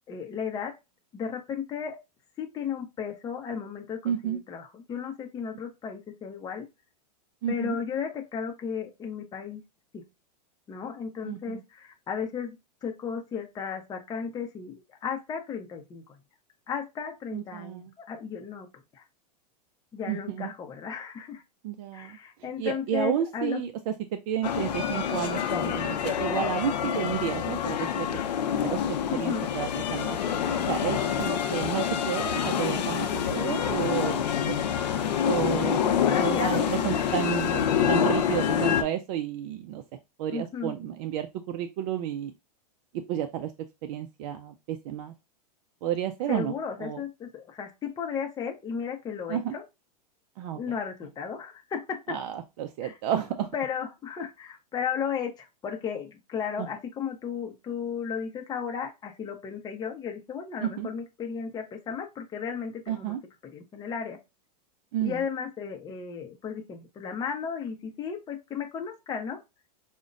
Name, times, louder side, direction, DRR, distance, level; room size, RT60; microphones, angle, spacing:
voice 1, 0.1-0.7 1.1-2.0 2.4-6.6 7.5-9.6 9.9-10.0 10.7-12.6 12.8-16.2 16.7-18.7 18.9-19.0 19.9-21.4 21.9-23.6 29.1-29.5 35.8-37.2 38.2-38.3 40.3-40.8 46.3-49.6 50.5-52.2 52.8-53.0 53.5-63.1 63.5-64.2 65.0-69.4, left 7 dB, 20° left, 2 dB, 0.6 m, -34 dB
voice 2, 4.0-4.4 7.4-7.8 11.2-11.6 17.3-17.9 20.1-20.5 21.6-22.2 22.6-28.1 28.6-28.8 29.1-30.2 30.7-34.6 35.2-35.8 36.1-37.6 37.9-39.8 40.2-42.3 43.1-43.5 43.8-45.1 45.8-46.5 46.8-47.0 49.3-49.5 50.4-50.7 52.1-53.5 56.6-56.7 60.6-60.9 62.9-63.2 64.9-65.2, right 10 dB, 55° right, 7 dB, 0.4 m, -31 dB
sound 1, 24.4-38.8, left 8 dB, 80° left, 0.6 m, -27 dB
4.9 x 2.1 x 2.4 m, 0.24 s
hypercardioid pair, 120°, 21 cm